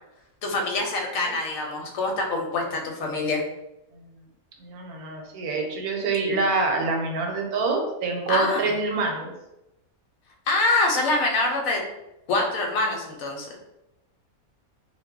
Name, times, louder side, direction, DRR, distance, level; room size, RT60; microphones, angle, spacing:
voice 1, 0.4-3.4 8.3-8.7 10.5-11.8 12.3-13.6, left 2 dB, 70° left, 1 dB, 1.0 m, -25 dB
voice 2, 4.6-9.3, right 3 dB, 80° right, 1 dB, 1.1 m, -26 dB
2.3 x 2.2 x 3.5 m, 0.91 s
omnidirectional pair, 1.5 m